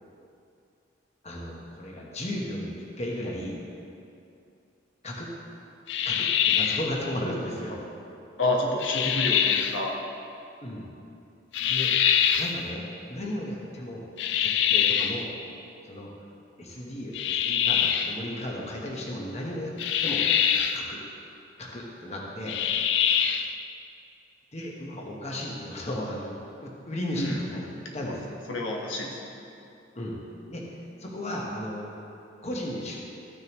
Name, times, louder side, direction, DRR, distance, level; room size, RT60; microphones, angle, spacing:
voice 1, 1.2-3.6 5.0-5.3 6.0-7.8 10.6-10.9 11.6-12.0 12.4-14.1 14.4-15.3 15.8-16.1 16.6-20.2 20.7-21.0 21.6-22.6 24.5-27.7 27.9-28.3 29.9-30.2 30.5-30.6 31.0-31.9 32.4-33.0, left 1 dB, 35° left, -2 dB, 1.2 m, -35 dB
sound 1, 5.9-6.9 8.8-9.8 11.5-12.6 14.2-15.3 17.1-18.2 19.8-20.8 22.5-23.5, left 8 dB, 65° left, 0.4 m, -24 dB
voice 2, 8.4-10.0 27.1-27.4 28.1-28.2 28.5-29.2, left 1 dB, 90° left, -1 dB, 1.3 m, -28 dB
14.0 x 6.6 x 3.0 m, 2.6 s
head